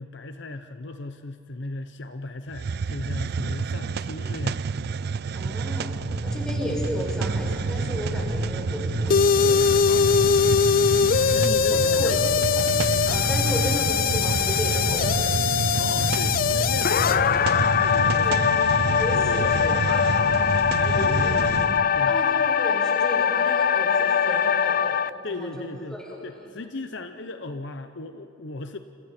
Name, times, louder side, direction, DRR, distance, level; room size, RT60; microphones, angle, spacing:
voice 1, 0.0-4.7 9.8-10.7 11.3-12.2 15.8-17.5 17.8-18.4 19.1-20.2 20.7-21.6 21.9-22.2 25.2-28.8, left 3 dB, 65° left, 8 dB, 0.9 m, -36 dB
Hiss, 2.5-21.8, right 5 dB, 55° right, 0.4 m, -30 dB
voice 2, 5.3-5.9 6.2-9.6 11.7-12.7 13.1-15.3 18.2-18.4 19.0-20.5 20.9-21.3 22.1-25.0 25.3-25.6 26.0-26.5, equal, 5° left, -4 dB, 6.5 m, -33 dB
sound 1, 5.9-21.9, equal, 75° right, 2.1 m, -33 dB
sound 2, 9.1-25.1, left 7 dB, 50° left, 0.4 m, -22 dB
29.5 x 28.5 x 4.4 m, 2.8 s
head